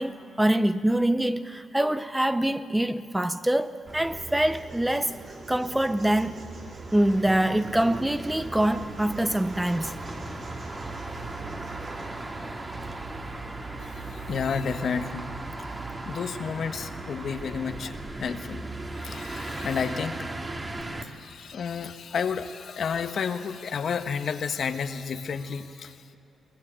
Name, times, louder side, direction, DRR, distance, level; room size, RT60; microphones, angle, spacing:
voice 1, 0.0-6.4 6.9-10.0, right 1 dB, 5° right, 0.7 m, -25 dB
sound 1, 3.8-12.3, right 3 dB, 45° right, 7.0 m, -44 dB
sound 2, 3.9-21.0, right 2 dB, 25° right, 2.1 m, -38 dB
voice 2, 13.8-15.4 16.0-20.2 21.0-26.2, left 6 dB, 60° left, 1.3 m, -31 dB
23.0 x 20.5 x 9.0 m
cardioid pair, 110°, 0 cm